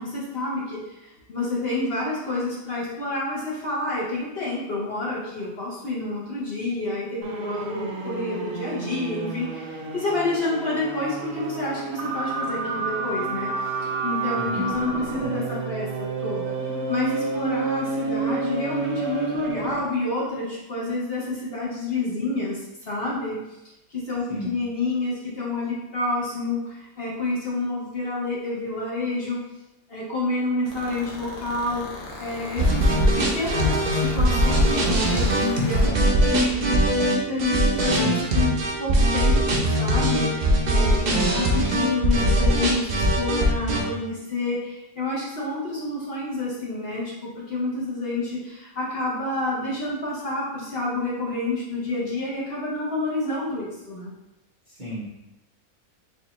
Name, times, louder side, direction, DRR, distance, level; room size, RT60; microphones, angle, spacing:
voice 1, 0.0-13.7 14.0-16.5 16.9-23.6 23.9-29.4 29.9-31.9 32.2-35.9 36.3-36.7 37.1-54.1, left 2 dB, 50° left, -5 dB, 0.8 m, -29 dB
sound 1, 7.2-19.9, right 4 dB, 70° right, 0.9 m, -30 dB
voice 2, 14.3-14.8 24.3-24.5 35.8-36.3 41.0-41.4 54.8-55.1, right 1 dB, 40° right, -10 dB, 0.9 m, -33 dB
sound 2, 30.7-35.9, left 1 dB, 90° left, 1.4 m, -37 dB
sound 3, 32.6-43.8, equal, 85° right, 0.3 m, -21 dB
4.2 x 2.4 x 2.9 m, 0.93 s
omnidirectional pair, 1.6 m